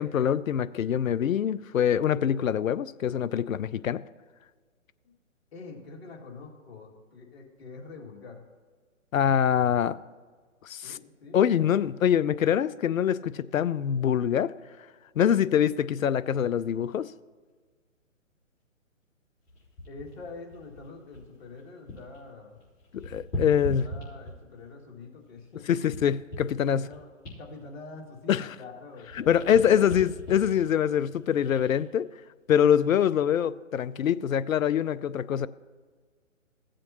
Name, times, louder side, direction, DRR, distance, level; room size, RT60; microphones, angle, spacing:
voice 1, 0.0-4.0 9.1-10.0 10.6-11.0 11.3-14.5 15.2-17.1 22.9-23.9 25.7-26.9 28.3-28.5 29.3-32.1 32.5-35.5, left 9 dB, 85° left, 16 dB, 0.5 m, -24 dB
voice 2, 5.5-8.4 10.8-11.4 19.9-22.6 23.5-25.7 26.7-27.1 27.4-30.0, left 4 dB, 50° left, -1 dB, 2.3 m, -45 dB
sound 1, 19.5-22.2 22.5-24.6 25.2-28.7 29.0-31.8 32.4-32.6, equal, 30° left, 3.5 m, -40 dB
16.5 x 7.6 x 2.9 m, 1.5 s
hypercardioid pair, 145°, 40 cm